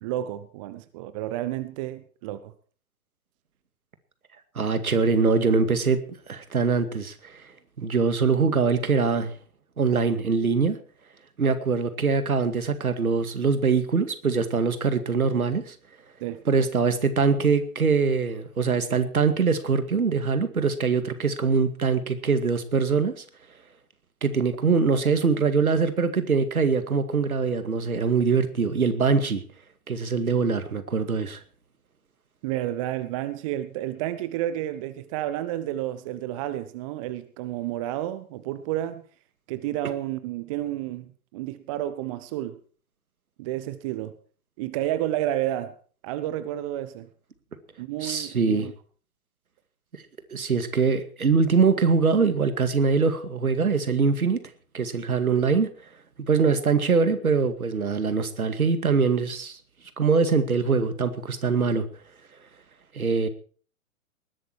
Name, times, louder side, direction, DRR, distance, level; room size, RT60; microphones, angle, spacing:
voice 1, 0.0-2.5 16.2-16.4 32.4-39.0 39.5-42.6 43.4-44.1 44.6-45.7 46.0-47.1 47.8-48.7, right 13 dB, 20° right, 0.8 m, -31 dB
voice 2, 4.6-7.4 7.8-9.3 9.8-10.8 11.4-15.8 16.5-23.2 24.2-29.4 29.9-31.4 48.0-48.7 50.3-54.4 54.7-55.7 56.2-59.6 60.0-61.9 62.9-63.3, right 5 dB, 70° right, 2.3 m, -23 dB
19.5 x 11.5 x 4.7 m
figure-of-eight pair, 120°, 44 cm